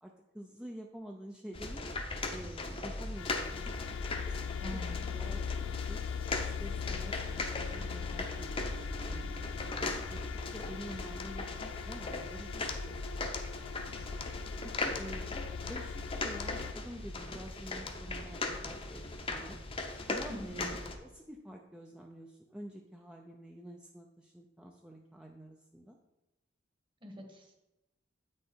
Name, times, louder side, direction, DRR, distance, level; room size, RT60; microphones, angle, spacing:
voice 1, 0.0-1.8 2.3-4.8 5.1-6.0 6.4-8.7 9.1-9.4 9.8-10.2 10.5-13.7 14.0-14.2 14.6-19.6 20.1-26.0, equal, 5° right, 0 dB, 0.5 m, -48 dB
sound 1, 1.5-21.0, left 2 dB, 30° left, 0.8 m, -39 dB
sound 2, 3.0-16.7, left 7 dB, 75° left, 0.3 m, -41 dB
voice 2, 4.6-5.3 20.3-20.6 27.0-27.6, equal, 25° right, 3 dB, 1.3 m, -45 dB
Bowed string instrument, 6.9-11.7, equal, 60° right, 3.3 m, -56 dB
8.4 x 6.4 x 4.4 m, 0.94 s
head